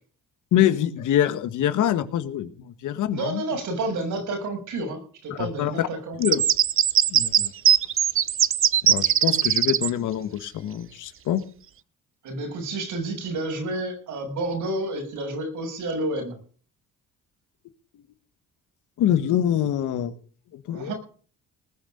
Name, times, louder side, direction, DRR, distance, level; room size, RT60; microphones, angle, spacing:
voice 1, 0.5-3.4 5.4-5.9 6.2-6.4 7.1-7.5 8.8-11.4 19.0-20.1 20.7-20.9, left 11 dB, 80° left, 11 dB, 1.6 m, -24 dB
voice 2, 3.1-6.2 12.2-16.4 20.7-20.9, right 2 dB, 80° right, 4 dB, 6.8 m, -30 dB
sound 1, 6.2-9.9, right 10 dB, 45° right, 0.6 m, -20 dB
19.5 x 6.6 x 8.8 m, 0.42 s
cardioid pair, 90°, 30 cm